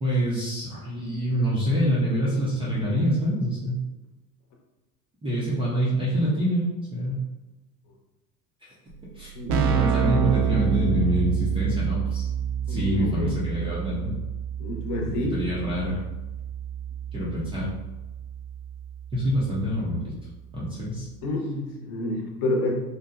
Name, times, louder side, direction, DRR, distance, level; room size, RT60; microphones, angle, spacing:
voice 1, 0.0-3.8 5.2-6.6 6.9-7.2 8.6-8.7 9.2-12.3 12.7-14.1 15.1-15.9 17.1-17.7 19.1-20.1 20.5-21.1, equal, 10° right, -7 dB, 0.4 m, -26 dB
Keyboard (musical), 8.9-9.0 9.2-19.8, right 8 dB, 70° right, 0.5 m, -28 dB
voice 2, 9.3-9.7 12.7-13.3 14.6-15.3 21.2-22.7, left 1 dB, 50° left, 0 dB, 0.7 m, -29 dB
2.7 x 2.1 x 2.3 m, 1.1 s
hypercardioid pair, 90°, 48 cm